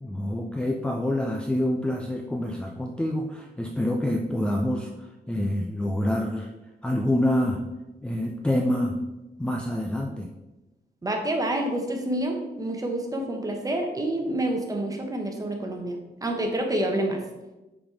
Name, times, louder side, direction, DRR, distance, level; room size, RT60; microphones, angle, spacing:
voice 1, 0.0-6.5 6.8-7.6 8.0-9.0 9.4-10.3, left 1 dB, 5° left, 1 dB, 0.4 m, -27 dB
voice 2, 11.0-15.9 16.2-17.2, right 1 dB, 20° right, 2 dB, 1.0 m, -28 dB
6.1 x 4.2 x 4.8 m, 1.0 s
wide cardioid pair, 150°, 17 cm